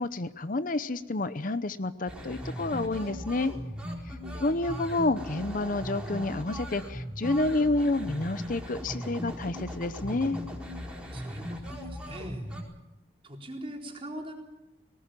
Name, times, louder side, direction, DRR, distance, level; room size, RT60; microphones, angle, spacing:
voice 1, 0.0-3.5 4.1-4.2 4.4-10.4, left 2 dB, 50° left, 13 dB, 0.8 m, -29 dB
sound 1, 2.1-12.6, equal, 5° right, 4.3 m, -38 dB
voice 2, 11.1-12.5 13.2-14.3, right 1 dB, 30° right, 2 dB, 3.9 m, -42 dB
19.5 x 19.0 x 8.9 m, 0.94 s
head